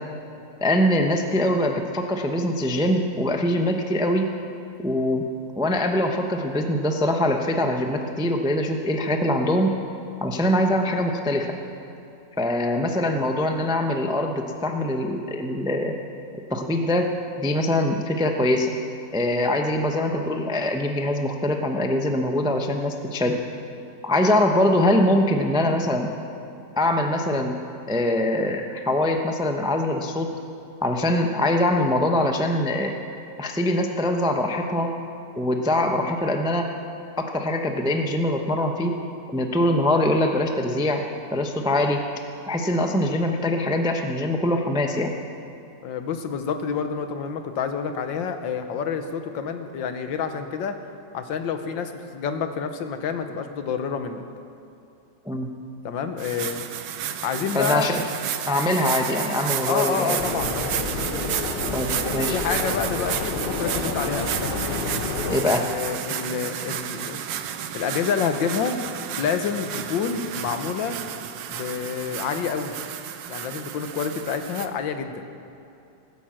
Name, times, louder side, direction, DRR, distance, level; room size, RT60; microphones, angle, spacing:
voice 1, 0.6-4.3 4.8-5.2 5.6-9.7 10.2-11.6 12.4-16.0 16.5-17.1 17.4-18.7 19.1-23.4 24.0-26.1 26.8-27.6 27.9-30.3 30.8-32.9 33.4-34.9 35.4-36.7 37.2-39.0 39.3-41.0 41.3-42.0 42.5-45.1 55.3-55.5 57.5-58.0 58.5-60.2 61.7-62.4 65.3-65.6, left 1 dB, 5° right, 4 dB, 0.3 m, -23 dB
voice 2, 45.8-50.8 51.1-54.2 55.8-56.6 57.2-57.9 59.7-60.8 62.3-64.3 65.4-67.2 67.7-68.8 69.2-71.0 71.5-72.7 73.3-75.2, left 6 dB, 85° left, 7 dB, 1.7 m, -28 dB
sound 1, 56.2-74.7, right 10 dB, 80° right, 1.4 m, -32 dB
sound 2, 60.2-65.4, left 3 dB, 35° left, 1.2 m, -29 dB
16.5 x 9.9 x 7.5 m, 2.7 s
omnidirectional pair, 2.0 m